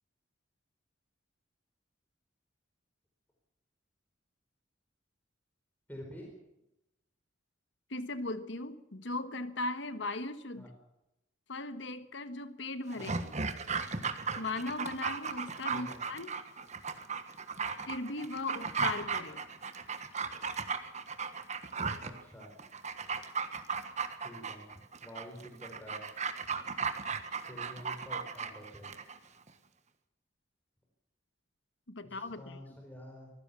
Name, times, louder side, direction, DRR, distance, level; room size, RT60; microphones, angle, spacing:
voice 1, 5.9-6.3 10.6-10.7 13.0-13.2 15.7-16.0 22.0-22.5 24.2-24.7 25.0-26.1 27.5-28.9 32.0-33.3, equal, 10° left, -1 dB, 4.5 m, -48 dB
voice 2, 7.9-10.7 11.5-13.3 14.4-16.4 17.9-19.4 31.9-32.6, left 2 dB, 70° left, 11 dB, 1.5 m, -38 dB
Dog, 12.9-29.2 29.5-29.6, right 5 dB, 35° right, 1.5 m, -36 dB
24.0 x 15.5 x 7.1 m, 0.88 s
head